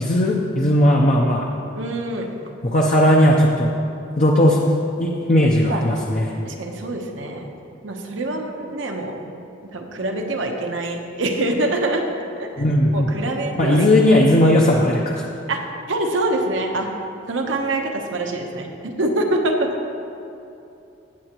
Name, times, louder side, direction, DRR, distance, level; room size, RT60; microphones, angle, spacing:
voice 1, 0.0-1.5 2.6-3.7 4.2-4.7 5.0-6.3 12.6-13.1 13.5-15.2, left 1 dB, 40° left, -2 dB, 0.7 m, -17 dB
voice 2, 1.7-2.3 5.7-5.8 6.4-7.5 7.8-9.2 9.7-12.0 12.4-12.5 12.9-13.9 15.5-16.9 17.3-19.7, right 2 dB, 80° right, 2 dB, 1.0 m, -25 dB
16.0 x 7.7 x 3.0 m, 2.8 s
head